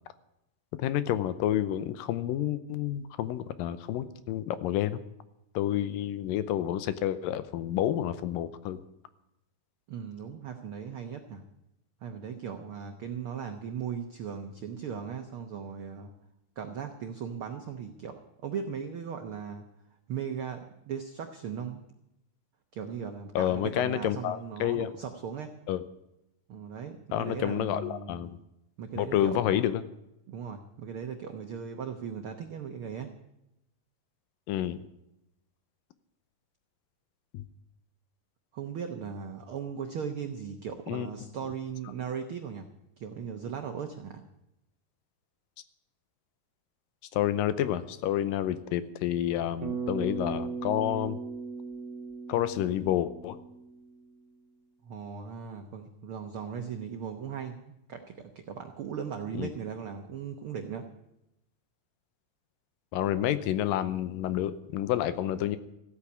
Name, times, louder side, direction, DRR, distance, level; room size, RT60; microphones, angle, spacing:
voice 1, 0.8-5.0 5.5-8.8 23.4-24.9 25.7-25.8 27.1-28.4 29.0-29.8 34.5-34.8 37.3-37.4 40.9-41.1 47.1-51.2 52.3-53.4 59.4-59.5 62.9-65.6, left 12 dB, 90° left, 13 dB, 2.5 m, -29 dB
voice 2, 9.9-11.4 12.0-16.1 16.6-19.7 20.1-21.8 22.7-25.5 26.5-28.2 28.8-29.7 30.3-33.1 38.5-42.7 43.0-44.2 54.8-60.9, right 7 dB, 85° right, 5 dB, 1.2 m, -38 dB
Bass guitar, 49.6-54.0, right 5 dB, 70° right, 2.6 m, -37 dB
15.0 x 8.5 x 9.6 m, 0.87 s
omnidirectional pair, 3.9 m